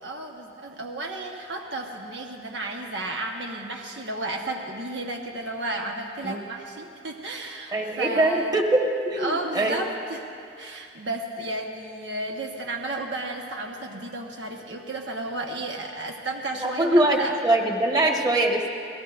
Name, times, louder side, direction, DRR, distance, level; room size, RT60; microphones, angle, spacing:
voice 1, 0.0-8.5 9.2-10.2 10.6-17.3, right 2 dB, 90° right, 1 dB, 1.2 m, -33 dB
voice 2, 7.7-9.8 16.6-18.6, right 1 dB, 25° right, 1 dB, 1.4 m, -22 dB
27.5 x 18.0 x 2.5 m, 2.5 s
head